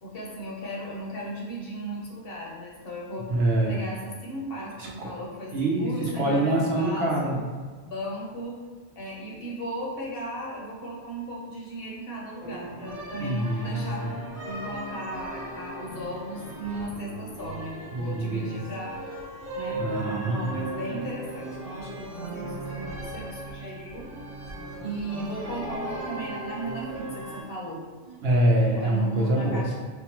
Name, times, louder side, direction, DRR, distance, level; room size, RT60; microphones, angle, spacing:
voice 1, 0.0-3.3 3.7-7.4 7.8-8.6 9.0-14.1 14.4-19.0 19.5-19.9 20.3-24.1 24.8-27.8 28.7-29.7, equal, 60° left, -4 dB, 0.9 m, -36 dB
voice 2, 3.3-3.8 5.0-5.1 5.5-7.4 13.2-14.1 17.9-18.6 19.8-20.4 28.0-29.6, right 1 dB, 65° right, -2 dB, 0.9 m, -25 dB
sound 1, 12.4-27.4, right 1 dB, 35° right, 1.1 m, -37 dB
4.4 x 2.3 x 2.9 m, 1.5 s
omnidirectional pair, 1.1 m